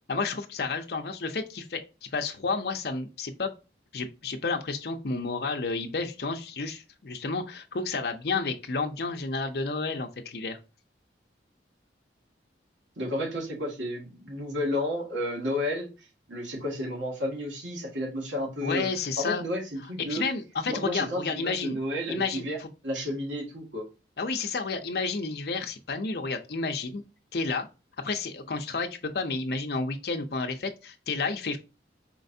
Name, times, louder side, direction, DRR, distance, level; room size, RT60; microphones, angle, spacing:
voice 1, 0.1-1.8 2.1-3.5 3.9-10.6 18.6-19.4 20.1-21.8 22.1-22.7 24.2-27.0 27.3-27.7 28.0-31.6, left 4 dB, 55° left, 4 dB, 0.6 m, -31 dB
voice 2, 13.0-15.9 16.3-18.9 19.2-20.2 20.7-22.6 22.8-23.9, left 1 dB, 90° right, 1 dB, 1.7 m, -32 dB
4.5 x 3.3 x 2.6 m, 0.30 s
head